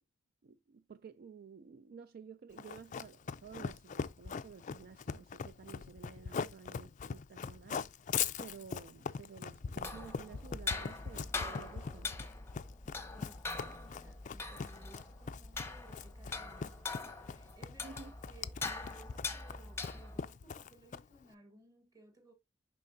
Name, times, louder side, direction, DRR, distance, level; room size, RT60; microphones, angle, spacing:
voice 1, 0.4-12.1 17.8-18.1, right 6 dB, 55° right, 0.4 m, -53 dB
Run, 2.6-21.2, left 6 dB, 40° left, 0.4 m, -41 dB
sound 1, 9.6-20.3, left 4 dB, 15° left, 0.8 m, -43 dB
voice 2, 13.1-22.3, right 1 dB, 20° right, 1.4 m, -60 dB
10.5 x 3.7 x 2.6 m
head